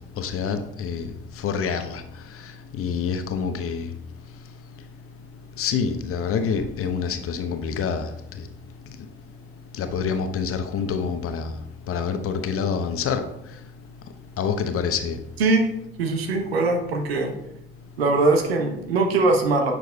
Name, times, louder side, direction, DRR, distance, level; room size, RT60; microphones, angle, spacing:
voice 1, 0.2-1.1 1.4-2.0 2.8-3.9 5.6-8.1 9.8-11.5 11.9-13.2 14.4-15.2, left 6 dB, 45° left, 8 dB, 0.8 m, -26 dB
voice 2, 16.0-17.3 18.0-19.7, right 3 dB, 80° right, 3 dB, 0.9 m, -21 dB
9.4 x 6.3 x 2.3 m, 0.83 s
figure-of-eight pair, 45°, 30 cm